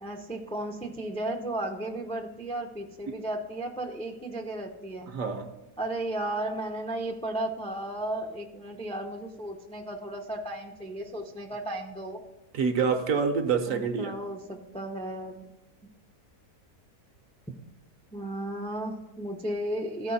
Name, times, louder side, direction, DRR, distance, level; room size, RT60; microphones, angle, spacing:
voice 1, 0.0-5.1 5.8-12.2 13.7-15.5 18.1-20.1, right 1 dB, 10° left, 1 dB, 0.3 m, -34 dB
voice 2, 5.1-5.5 12.5-14.1, right 5 dB, 60° right, 7 dB, 1.2 m, -26 dB
14.0 x 4.7 x 4.1 m, 1.0 s
omnidirectional pair, 1.7 m